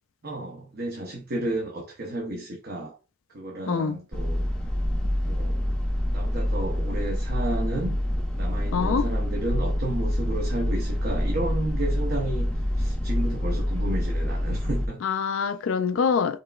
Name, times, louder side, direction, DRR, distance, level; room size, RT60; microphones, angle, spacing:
voice 1, 0.2-3.0 3.3-4.4 5.3-5.7 6.1-8.0 8.3-15.0, right 1 dB, 50° right, 0.8 m, -32 dB
voice 2, 3.7-4.0 8.7-9.0 15.0-16.4, left 6 dB, 65° left, 0.4 m, -25 dB
sound 1, 4.1-14.9, equal, 5° left, 0.6 m, -26 dB
4.8 x 3.2 x 2.3 m
head